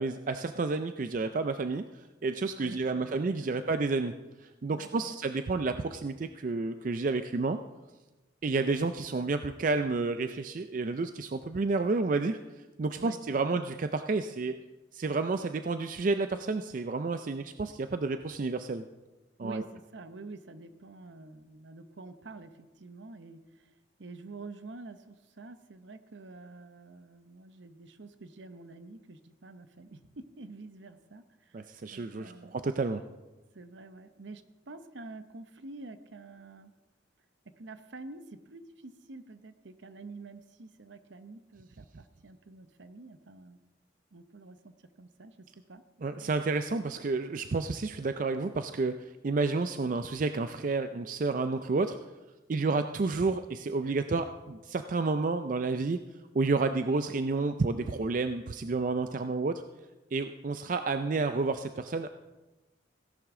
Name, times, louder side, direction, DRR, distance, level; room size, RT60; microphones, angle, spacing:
voice 1, 0.0-4.1 4.4-7.6 8.4-12.4 12.8-14.6 14.9-18.8 19.4-19.6 31.5-33.0 46.0-49.0 49.2-52.0 52.5-56.0 56.3-59.6 60.1-62.1, right 3 dB, 45° right, 9 dB, 0.4 m, -30 dB
voice 2, 2.6-3.3 4.7-5.2 13.0-13.6 19.4-32.5 33.5-36.7 37.4-43.6 44.1-45.8 46.2-46.3 52.6-52.8, right 3 dB, 70° right, 11 dB, 0.8 m, -48 dB
16.5 x 11.0 x 3.7 m, 1.1 s
head